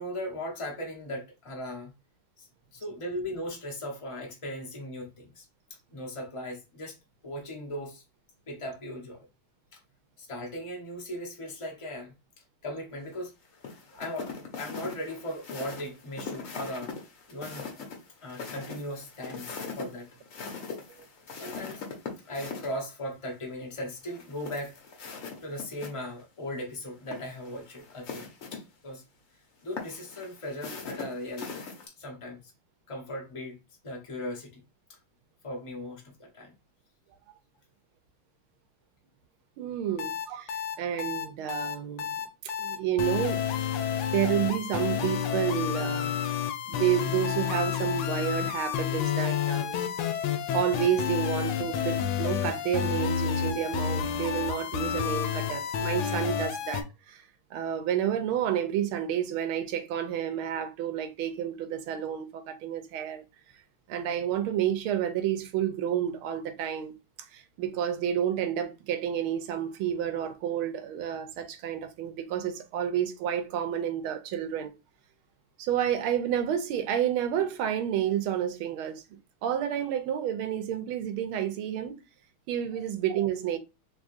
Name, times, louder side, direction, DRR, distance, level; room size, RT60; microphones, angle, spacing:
voice 1, 0.0-1.9 2.4-5.5 5.9-7.0 7.2-8.0 8.5-9.2 9.7-9.8 10.2-12.1 12.6-13.3 13.9-16.9 17.3-17.7 18.2-20.1 21.3-21.8 22.2-24.7 25.4-29.0 29.6-31.5 32.0-32.4 32.9-33.6 33.8-34.6 35.4-36.5 39.9-40.0 82.7-82.8, left 1 dB, 40° left, 0.4 m, -38 dB
sound 1, 13.6-22.7 24.1-25.9 26.2-26.3 27.0-28.6 29.8-31.9, left 5 dB, 55° left, 1.0 m, -41 dB
voice 2, 39.6-43.5 44.1-46.1 46.7-49.8 50.5-57.3 57.5-63.2 63.9-66.9 67.2-74.7 75.6-79.0 79.4-82.0 82.5-83.6, right 10 dB, 85° right, 1.5 m, -30 dB
sound 2, 40.0-56.8, left 9 dB, 80° left, 1.5 m, -30 dB
3.6 x 3.5 x 2.6 m
omnidirectional pair, 2.3 m